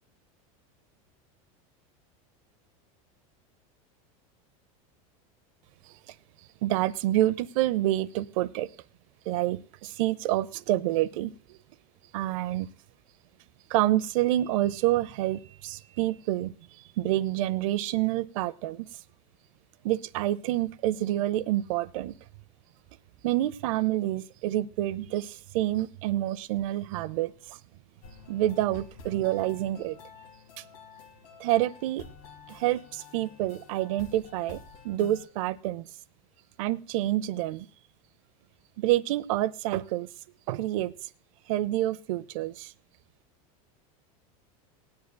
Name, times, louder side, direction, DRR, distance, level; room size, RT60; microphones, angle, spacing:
voice 1, 6.6-8.7 9.3-11.6 12.1-12.7 13.7-16.5 17.0-18.9 19.8-22.1 23.2-27.6 28.3-30.0 30.6-30.7 31.4-32.0 32.5-35.9 36.6-37.7 38.8-40.1 40.5-40.9 41.5-42.7, right 14 dB, 65° right, 17 dB, 0.6 m, -28 dB
sound 1, 28.0-35.3, left 6 dB, 90° left, 2.0 m, -49 dB
20.0 x 9.6 x 2.2 m, 0.40 s
supercardioid pair, 155°, 18 cm